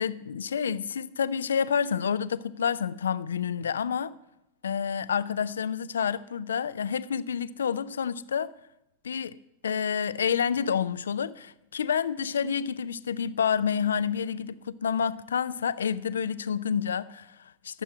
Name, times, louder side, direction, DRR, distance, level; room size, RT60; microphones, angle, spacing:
voice 1, 0.0-4.1 4.6-8.5 9.0-9.4 9.6-17.8, left 7 dB, 65° left, 0.5 m, -29 dB
12.0 x 7.5 x 8.0 m
figure-of-eight pair, 90°, 0 cm